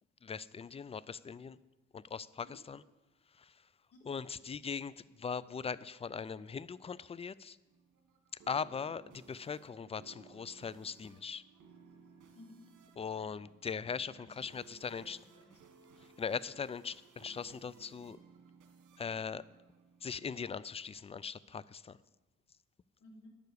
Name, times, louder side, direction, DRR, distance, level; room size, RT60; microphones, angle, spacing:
voice 1, 0.2-1.6 1.9-2.8 3.3-3.7 4.1-7.6 8.5-11.4 13.0-15.2 16.2-18.2 19.0-19.4 20.0-22.0, left 6 dB, 20° left, 19 dB, 0.3 m, -40 dB
sound 1, 7.7-20.4, right 6 dB, 75° right, 1.8 m, -60 dB
voice 2, 14.4-15.5 16.2-16.4 23.0-23.3, left 2 dB, 50° left, -2 dB, 3.7 m, -57 dB
10.5 x 6.9 x 8.2 m, 1.1 s
cardioid pair, 90°, 30 cm